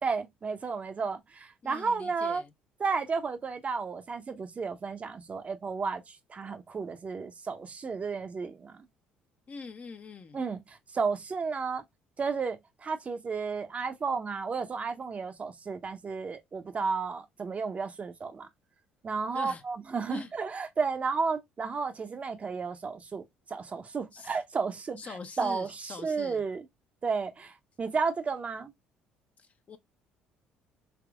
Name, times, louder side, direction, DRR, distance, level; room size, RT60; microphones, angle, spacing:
voice 1, 0.0-2.4 2.8-8.8 10.3-11.8 12.2-18.5 19.0-26.7 27.0-28.7, right 5 dB, 35° right, 0.6 m, -33 dB
voice 2, 1.6-2.5 9.5-10.4 19.3-19.6 20.1-20.3 24.1-24.4 25.0-26.4 29.4-29.8, left 4 dB, 40° left, 0.6 m, -43 dB
3.5 x 2.9 x 2.2 m
hypercardioid pair, 65°, 4 cm